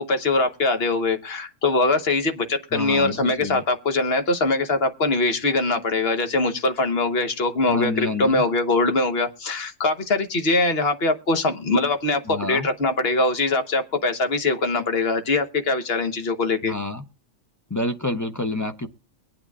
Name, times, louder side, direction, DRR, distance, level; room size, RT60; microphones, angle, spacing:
voice 1, 0.0-16.7, left 3 dB, 55° left, 8 dB, 1.3 m, -22 dB
voice 2, 2.7-3.6 7.7-8.4 12.3-12.7 16.6-17.0 17.7-18.9, left 2 dB, 20° left, 5 dB, 0.5 m, -28 dB
22.5 x 8.8 x 2.3 m, 0.33 s
omnidirectional pair, 1.3 m